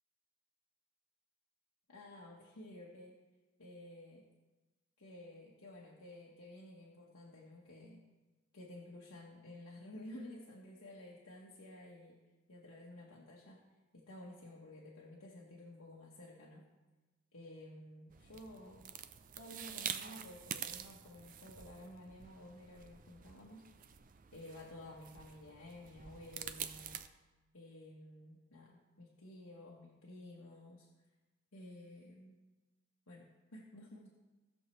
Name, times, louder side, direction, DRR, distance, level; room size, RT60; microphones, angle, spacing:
voice 1, 1.9-3.1 3.6-4.2 5.0-8.0 8.5-12.2 12.5-13.6 13.9-16.6 17.3-18.9 19.4-23.6 24.3-27.0 27.5-30.9 31.5-32.3 33.1-34.2, left 1 dB, 80° left, -4 dB, 1.4 m, -53 dB
sound 1, 18.1-27.1, right 8 dB, 35° right, 0.4 m, -47 dB
18.5 x 6.5 x 3.3 m, 1.2 s
head